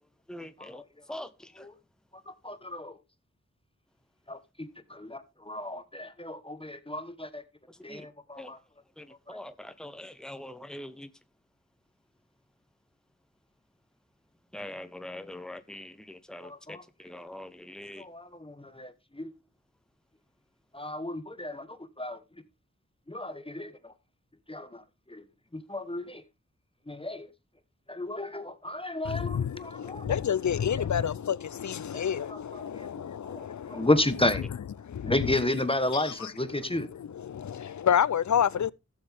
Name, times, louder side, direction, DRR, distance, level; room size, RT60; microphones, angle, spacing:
voice 1, 0.3-0.8 1.1-1.7 7.7-8.1 8.4-8.5 9.0-11.1 14.5-18.0, left 1 dB, ahead, 1.0 m, -43 dB
voice 2, 2.3-2.9 4.3-7.4 7.8-8.6 9.3-9.4 16.4-16.8 18.0-19.3 20.7-22.2 23.1-23.7 24.5-24.8 25.1-25.2 25.5-26.2 26.9-27.3 27.9-30.1 31.9-32.0 32.5-32.9 33.2-34.4 35.0-36.9, left 1 dB, 20° left, 1.2 m, -32 dB
voice 3, 29.0-33.9 34.4-34.5 34.8-35.4 35.9-38.7, left 8 dB, 75° left, 0.5 m, -29 dB
17.0 x 7.0 x 3.5 m
wide cardioid pair, 65°, 29 cm